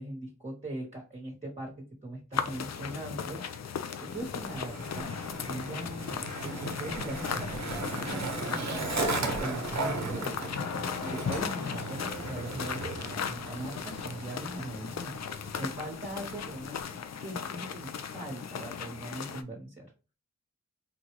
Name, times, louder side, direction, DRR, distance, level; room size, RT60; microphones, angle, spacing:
voice 1, 0.0-3.4 4.0-5.1 5.4-8.4 8.7-10.4 11.0-15.2 15.6-19.9, right 1 dB, 20° right, -1 dB, 1.1 m, -40 dB
sound 1, 2.3-19.4, left 7 dB, 55° left, 0.5 m, -37 dB
Skateboard, 4.1-16.8, right 3 dB, 55° right, 0.8 m, -37 dB
3.9 x 2.3 x 3.0 m, 0.33 s
cardioid pair, 45°, 32 cm